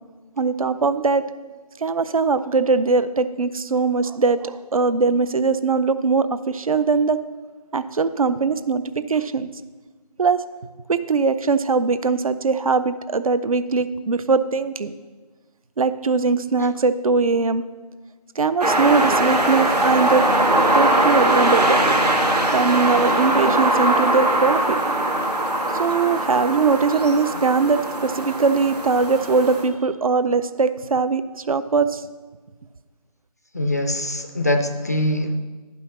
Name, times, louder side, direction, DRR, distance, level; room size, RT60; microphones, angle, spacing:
voice 1, 0.4-1.2 1.8-7.2 7.7-8.8 9.1-9.5 10.2-10.4 10.9-14.9 15.8-17.6 18.4-20.2 20.7-22.0 22.5-24.8 25.7-32.0, right 4 dB, 60° right, 13 dB, 0.5 m, -21 dB
sound 1, 18.6-29.7, right 1 dB, 90° right, 1.8 m, -21 dB
voice 2, 33.5-35.4, left 1 dB, 25° left, 7 dB, 0.4 m, -23 dB
10.5 x 5.6 x 6.4 m, 1.3 s
figure-of-eight pair, 160°, 20 cm